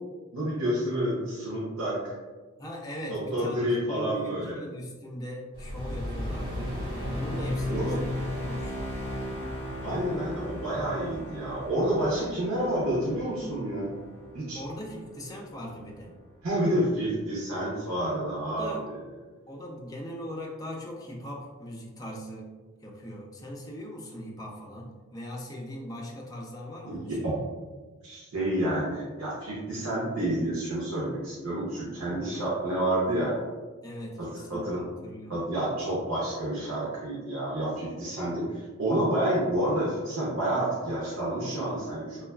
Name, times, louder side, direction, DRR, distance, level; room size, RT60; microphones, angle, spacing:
voice 1, 0.3-2.1 3.1-4.6 7.7-8.0 9.8-13.9 14.3-14.6 16.4-18.8 26.8-27.4 28.0-33.3 34.2-34.8 35.3-42.2, right 1 dB, 90° right, -7 dB, 0.7 m, -29 dB
voice 2, 2.6-6.7 7.1-8.8 14.5-16.2 18.5-18.8 19.5-22.5 22.8-27.2 33.8-35.4, equal, 15° left, -1 dB, 0.3 m, -40 dB
sound 1, 5.5-16.0, left 1 dB, 60° right, 1.2 m, -35 dB
2.9 x 2.3 x 2.2 m, 1.3 s
head